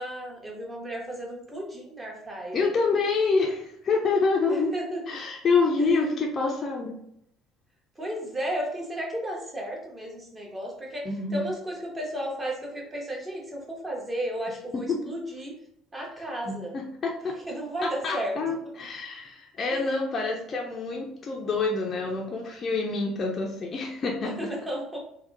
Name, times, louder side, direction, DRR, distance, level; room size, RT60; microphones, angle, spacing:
voice 1, 0.0-2.6 4.5-5.0 8.0-15.5 15.9-16.7 17.5-18.4 19.7-19.9 24.2-25.0, right 1 dB, 20° right, -1 dB, 0.9 m, -34 dB
voice 2, 2.5-4.7 5.1-6.9 11.0-11.4 14.9-15.0 16.5-17.3 17.8-24.5, left 4 dB, 35° left, 0 dB, 0.4 m, -27 dB
3.4 x 2.1 x 2.4 m, 0.71 s
figure-of-eight pair, 55°, 0 cm